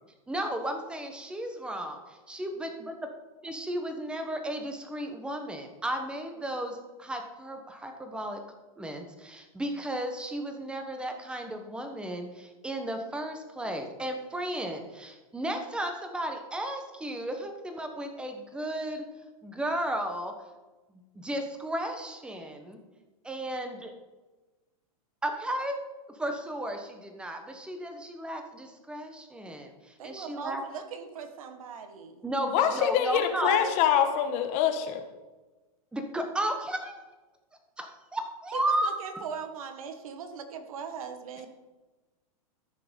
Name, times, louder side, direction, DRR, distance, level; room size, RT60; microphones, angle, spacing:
voice 1, 0.3-2.9 3.4-8.4 8.8-19.1 19.4-20.3 21.1-22.8 23.2-23.9 25.2-25.8 26.1-30.6 32.2-33.7 35.9-37.1 37.8-38.9, right 1 dB, 5° right, 5 dB, 1.1 m, -34 dB
voice 2, 30.0-32.2 38.5-41.5, right 6 dB, 70° right, 8 dB, 1.5 m, -40 dB
voice 3, 32.5-35.0, left 9 dB, 40° left, 7 dB, 1.3 m, -25 dB
14.0 x 5.9 x 5.2 m, 1.2 s
supercardioid pair, 145°, 19 cm